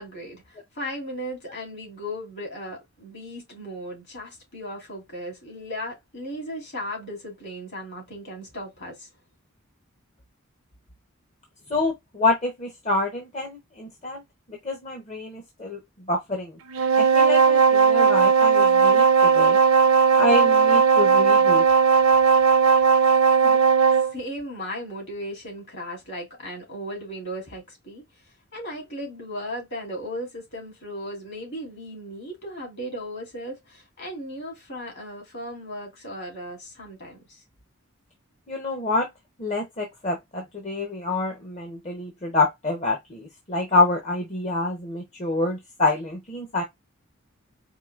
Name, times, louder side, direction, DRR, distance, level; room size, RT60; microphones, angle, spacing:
voice 1, 0.0-9.1 23.2-23.6 24.1-28.0 28.5-37.4, equal, 55° left, 2.9 m, -36 dB
voice 2, 11.7-14.2 14.6-15.8 16.1-16.6 17.0-19.6 20.1-21.6 38.5-39.1 39.4-46.6, left 2 dB, 30° left, 0.8 m, -27 dB
sound 1, 16.7-24.1, right 5 dB, 75° right, 0.5 m, -17 dB
4.7 x 2.7 x 2.3 m
head